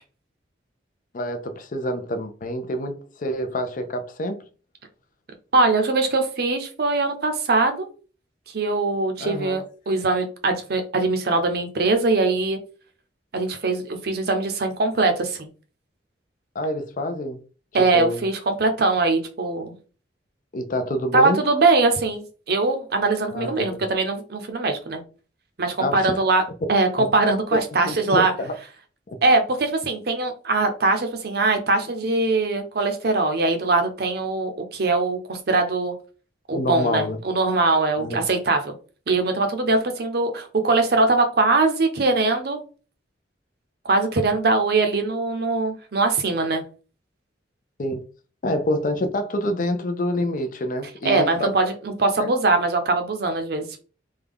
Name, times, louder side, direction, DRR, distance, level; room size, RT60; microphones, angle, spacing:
voice 1, 1.1-4.5 9.2-9.6 16.5-17.4 17.8-18.3 20.5-21.4 23.3-23.8 25.8-26.1 27.0-27.1 27.9-28.6 29.1-29.2 36.5-37.2 38.0-38.2 47.8-48.0 48.4-51.5 52.2-52.3, left 1 dB, 45° left, 0.4 m, -27 dB
voice 2, 5.5-7.9 8.5-12.6 13.3-15.5 17.7-19.7 21.1-25.0 25.6-26.4 26.7-28.3 29.2-35.9 36.5-38.7 39.1-42.6 43.8-46.6 51.0-53.8, right 3 dB, 55° right, 0.6 m, -22 dB
3.5 x 2.2 x 3.4 m
head